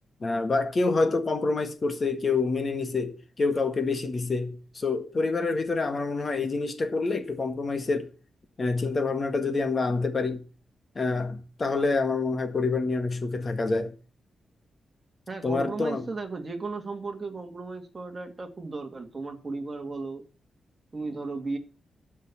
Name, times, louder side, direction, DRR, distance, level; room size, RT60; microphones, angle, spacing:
voice 1, 0.2-8.1 8.6-10.4 10.9-13.9 15.4-16.1, left 3 dB, 35° left, 1.7 m, -27 dB
voice 2, 15.3-20.2 20.9-21.6, right 3 dB, 25° right, 2.4 m, -35 dB
12.0 x 5.7 x 8.7 m
wide cardioid pair, 140°, 0 cm